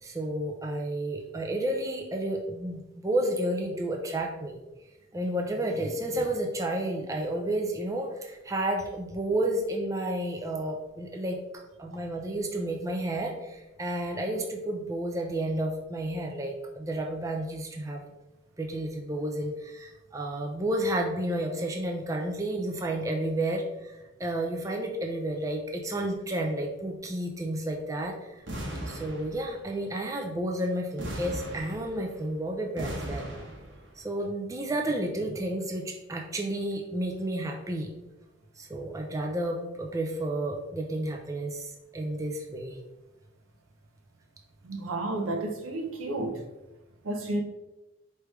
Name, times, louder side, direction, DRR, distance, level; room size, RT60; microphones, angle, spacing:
voice 1, 0.0-4.6 5.1-18.0 18.6-23.9 24.2-28.4 28.9-33.3 34.0-37.9 38.6-42.8, right 1 dB, 15° right, 1 dB, 0.4 m, -31 dB
sound 1, 28.5-29.7 31.0-32.2 32.8-33.9, right 1 dB, 60° right, 1.0 m, -37 dB
voice 2, 44.6-46.4 47.0-47.4, right 2 dB, 90° right, 3 dB, 0.7 m, -31 dB
4.7 x 3.3 x 3.1 m, 1.0 s
head